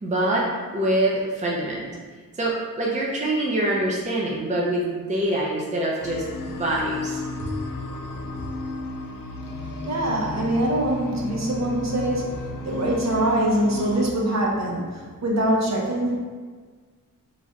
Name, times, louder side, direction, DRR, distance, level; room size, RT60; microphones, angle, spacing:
voice 1, 0.0-0.5 0.7-1.9 2.3-7.5, right 1 dB, 20° right, -3 dB, 0.6 m, -25 dB
sound 1, 6.0-14.1, left 2 dB, 65° left, 0.5 m, -33 dB
voice 2, 9.8-12.3 12.6-16.1, right 1 dB, 50° right, -2 dB, 0.9 m, -24 dB
3.1 x 2.5 x 3.9 m, 1.5 s
cardioid pair, 70°, 35 cm